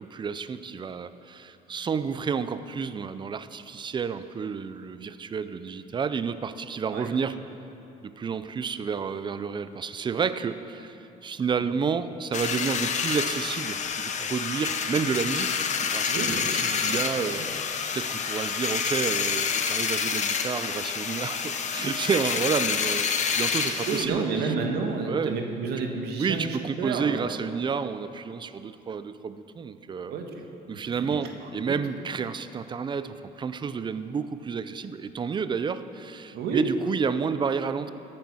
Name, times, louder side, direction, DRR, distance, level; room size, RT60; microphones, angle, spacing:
voice 1, 0.0-7.4 8.0-17.7 17.9-24.5 25.1-25.3 26.2-30.2 30.7-37.9, right 6 dB, 25° right, 12 dB, 0.5 m, -30 dB
sound 1, 12.3-24.1, left 6 dB, 45° left, 0.9 m, -28 dB
voice 2, 16.1-17.0 17.2-17.4 23.8-27.4 30.1-30.3 30.7-31.8 36.3-36.6, right 4 dB, 75° right, 3 dB, 1.6 m, -31 dB
13.5 x 8.8 x 6.2 m, 2.9 s
cardioid pair, 110°, 17 cm